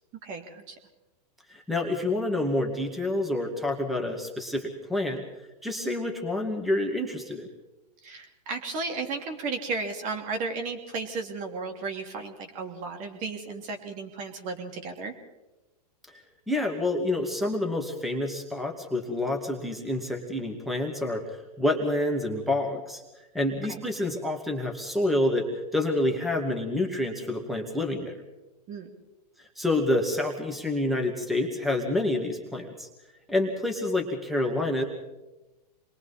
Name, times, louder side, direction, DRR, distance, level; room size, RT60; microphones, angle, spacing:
voice 1, 0.2-0.8 8.0-15.1 23.7-23.8 28.7-28.9, right 4 dB, 35° right, 4 dB, 2.8 m, -34 dB
voice 2, 1.5-5.2 5.6-7.5 16.1-23.0 23.3-28.1 29.6-32.9 33.3-34.8, left 1 dB, ahead, 2 dB, 2.3 m, -28 dB
27.5 x 21.5 x 4.3 m, 1.1 s
hypercardioid pair, 120°, 21 cm